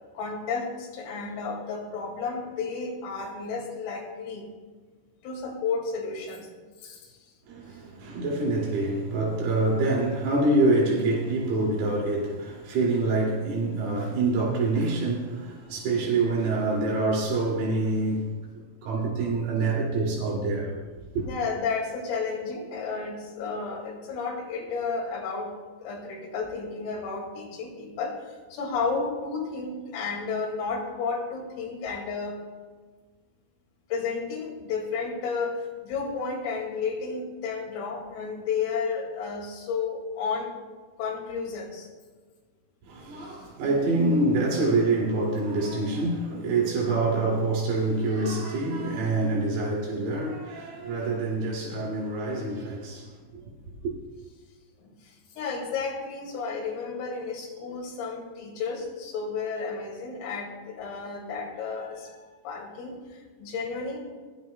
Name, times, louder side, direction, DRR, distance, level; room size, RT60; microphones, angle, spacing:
voice 1, 0.1-4.5 5.2-6.5 6.8-7.2 21.2-32.5 33.9-40.6 41.0-41.9 43.3-43.4 54.8-64.0, left 5 dB, 80° left, 4.6 m, -32 dB
voice 2, 7.5-18.3 18.8-20.8 21.2-21.3 42.9-53.4 53.8-53.9, right 2 dB, 80° right, 5.1 m, -26 dB
22.5 x 12.5 x 2.2 m
omnidirectional pair, 6.0 m